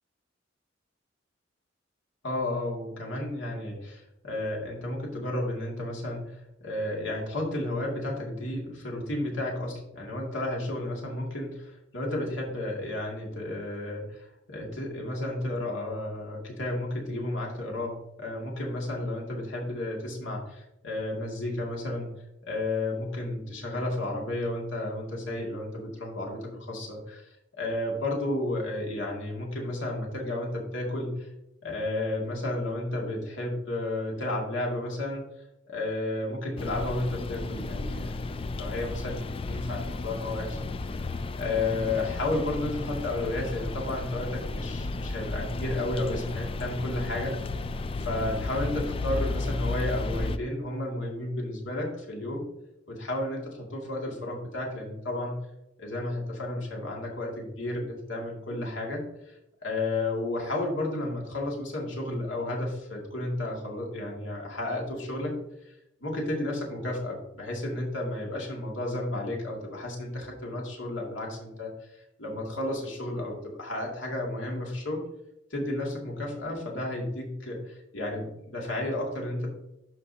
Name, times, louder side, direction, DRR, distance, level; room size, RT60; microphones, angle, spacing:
voice 1, 2.2-22.1 22.4-31.3 31.6-35.2 35.7-38.1 38.5-41.0 41.4-47.4 48.0-52.5 52.9-55.3 55.8-65.3 65.7-65.8 66.0-75.0 75.5-79.5, left 1 dB, 85° left, -1 dB, 2.3 m, -32 dB
sound 1, 36.6-50.4, left 3 dB, 30° left, 0.3 m, -33 dB
11.5 x 5.0 x 2.8 m, 0.86 s
head